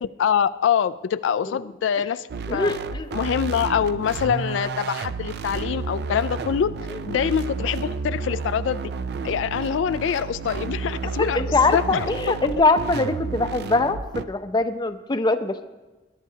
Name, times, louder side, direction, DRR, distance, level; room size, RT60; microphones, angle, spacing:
voice 1, 0.0-2.7 3.1-6.7 7.1-8.8 9.2-12.3, left 8 dB, 85° left, 14 dB, 0.3 m, -25 dB
sound 1, 2.3-14.2, right 4 dB, 60° right, 0.4 m, -31 dB
voice 2, 2.5-3.1 6.9-7.0 11.2-14.0 14.3-15.6, left 3 dB, 25° left, 9 dB, 0.5 m, -22 dB
21.5 x 11.0 x 2.8 m, 1.2 s
head